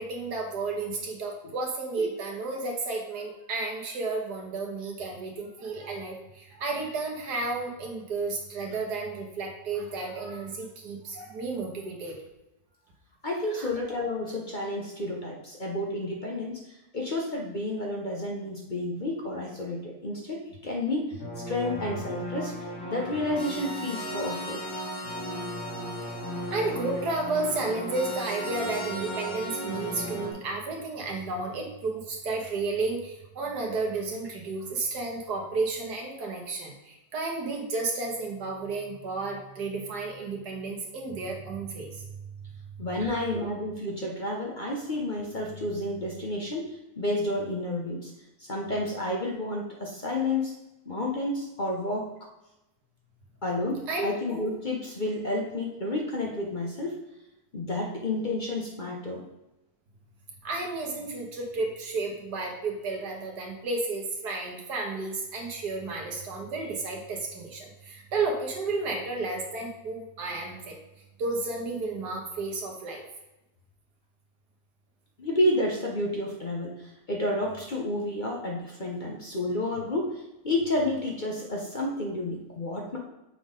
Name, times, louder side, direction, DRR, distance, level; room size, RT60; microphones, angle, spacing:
voice 1, 0.0-12.2 13.5-13.7 26.0-26.2 26.5-42.1 43.0-43.2 53.9-54.1 60.4-70.8 71.2-73.0, right 3 dB, 85° right, 1 dB, 1.8 m, -32 dB
voice 2, 13.2-22.5 22.9-24.6 42.8-46.7 47.0-48.1 48.4-50.5 50.8-52.1 53.4-57.0 57.5-59.2 75.2-83.0, left 1 dB, 40° left, -1 dB, 0.8 m, -30 dB
sound 1, 21.2-30.3, equal, 70° left, 2.0 m, -35 dB
6.9 x 3.8 x 5.1 m, 0.94 s
omnidirectional pair, 1.7 m